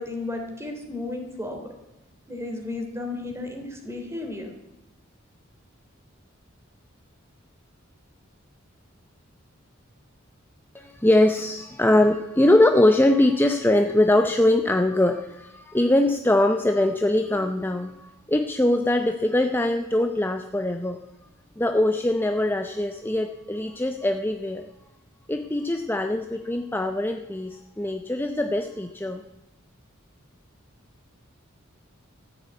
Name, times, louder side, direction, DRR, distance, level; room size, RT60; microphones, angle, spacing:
voice 1, 0.0-1.7 2.3-4.5, left 2 dB, 15° right, 3 dB, 3.1 m, -33 dB
voice 2, 10.7-21.0 21.6-24.6 25.3-29.2, left 1 dB, 10° left, 6 dB, 0.7 m, -22 dB
14.5 x 9.8 x 8.5 m, 1.0 s
head